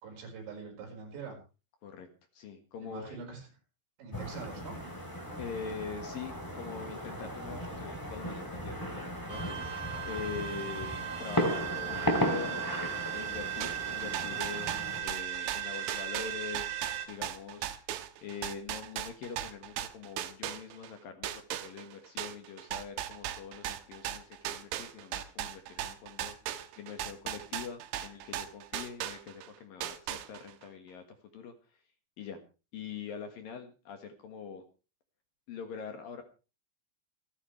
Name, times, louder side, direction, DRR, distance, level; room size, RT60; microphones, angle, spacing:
voice 1, 0.0-1.4 2.8-3.5 4.0-4.8 10.2-10.3, right 4 dB, 70° right, 2 dB, 7.1 m, -44 dB
voice 2, 2.3-3.2 5.4-9.0 9.3-12.6 13.1-16.8 17.1-17.7 18.2-31.0 31.3-31.8 32.2-32.4 32.7-34.6 35.5-36.2, left 6 dB, 60° left, 6 dB, 3.0 m, -43 dB
sound 1, 4.1-15.0, equal, 5° left, 2.2 m, -36 dB
sound 2, 9.3-17.1, right 11 dB, 50° right, 2.1 m, -37 dB
sound 3, 13.6-20.9 21.2-29.5 29.8-30.6, right 12 dB, 90° right, 3.4 m, -38 dB
28.0 x 9.6 x 3.3 m, 0.32 s
omnidirectional pair, 5.2 m